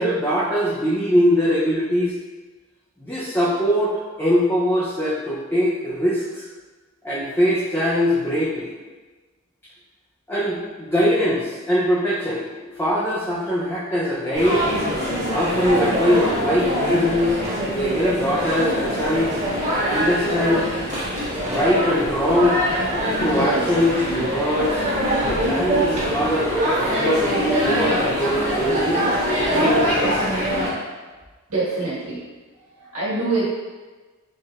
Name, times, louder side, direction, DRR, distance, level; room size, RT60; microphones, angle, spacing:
voice 1, 0.0-2.1 3.1-6.5 7.0-8.7 10.3-14.6 15.3-17.4 17.7-19.3 19.8-20.7 21.4-22.6 23.2-24.8 25.2-29.0 29.5-30.3, equal, 10° left, -8 dB, 0.5 m, -22 dB
sound 1, 14.3-30.7, equal, 30° right, 1.5 m, -23 dB
voice 2, 23.2-23.7 31.5-32.2 32.6-33.4, right 3 dB, 80° right, -8 dB, 1.5 m, -25 dB
4.3 x 3.1 x 2.4 m, 1.3 s
head